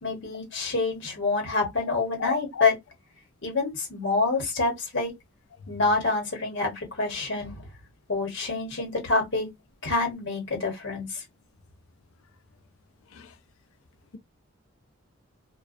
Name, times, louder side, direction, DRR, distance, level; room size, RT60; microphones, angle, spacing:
voice 1, 0.0-2.7 3.4-5.1 5.7-7.6 8.1-9.5 9.8-11.2, left 3 dB, 60° left, 1.1 m, -27 dB
voice 2, 2.2-2.6 13.1-13.3, left 6 dB, 85° left, 0.5 m, -33 dB
2.2 x 2.2 x 2.5 m
head